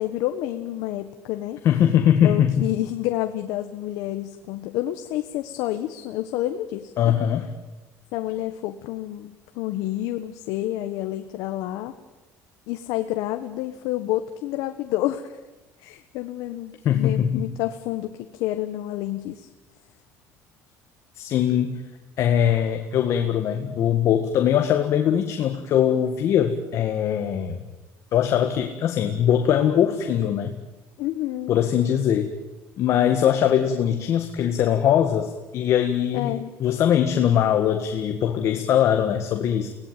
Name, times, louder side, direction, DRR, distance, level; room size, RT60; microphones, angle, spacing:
voice 1, 0.0-1.6 2.2-7.1 8.1-11.9 12.7-15.4 15.8-19.5 31.0-31.6 36.1-36.5, left 14 dB, 80° left, 7 dB, 1.3 m, -29 dB
voice 2, 1.6-2.5 7.0-7.5 16.8-17.5 21.2-21.8 22.2-27.6 28.1-30.5 31.5-32.3 32.8-36.3 36.6-39.7, left 9 dB, 50° left, 6 dB, 1.8 m, -21 dB
24.5 x 18.0 x 9.1 m, 1.1 s
cardioid pair, 135°, 6 cm